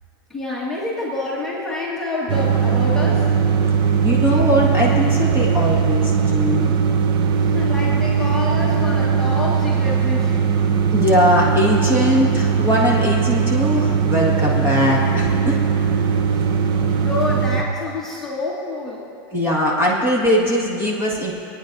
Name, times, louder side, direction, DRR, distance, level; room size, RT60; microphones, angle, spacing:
voice 1, 0.3-3.3 7.4-10.4 16.3-16.4 17.0-19.0, left 2 dB, 5° left, -6 dB, 1.5 m, -27 dB
sound 1, 2.3-17.6, right 6 dB, 40° right, 0.8 m, -19 dB
voice 2, 4.0-6.7 10.9-15.6 19.3-21.3, equal, 15° right, -4 dB, 1.8 m, -20 dB
26.5 x 9.5 x 2.6 m, 2.6 s
supercardioid pair, 140°, 12 cm